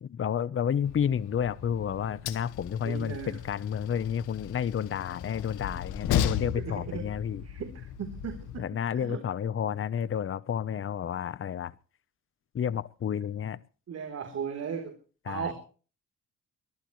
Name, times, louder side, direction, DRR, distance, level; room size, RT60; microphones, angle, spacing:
voice 1, 0.0-7.4 8.6-11.7 12.5-13.6 15.3-15.5, left 8 dB, 45° left, 0.9 m, -30 dB
Train, 0.8-8.6, left 10 dB, 90° left, 1.7 m, -36 dB
voice 2, 2.8-3.4 6.6-7.1 7.4-8.6 9.0-9.2 13.9-14.9 15.3-15.5, right 7 dB, 55° right, 3.8 m, -36 dB
23.0 x 14.5 x 3.2 m
cardioid pair, 90°, 30 cm